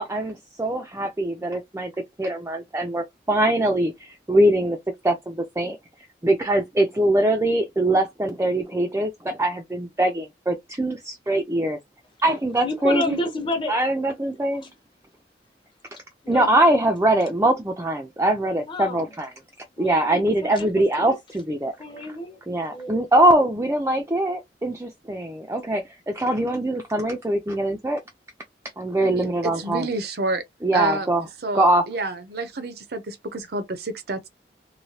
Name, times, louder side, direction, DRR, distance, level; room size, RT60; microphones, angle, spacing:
voice 1, 0.0-1.9 2.2-4.8 5.0-5.8 6.2-11.8 12.2-13.2 13.7-14.6 16.3-19.3 19.8-21.7 22.5-28.0 28.8-29.9 30.6-31.3 31.5-31.8, right 1 dB, 15° right, 0.4 m, -22 dB
voice 2, 12.6-13.8 14.6-14.7 16.2-16.8 18.7-19.1 19.8-20.7 21.0-21.2 21.8-22.4 22.7-23.1, left 2 dB, 30° left, 0.8 m, -30 dB
voice 3, 29.0-30.4 30.7-31.1 31.4-34.3, right 3 dB, 60° right, 0.6 m, -29 dB
3.2 x 2.7 x 2.7 m
head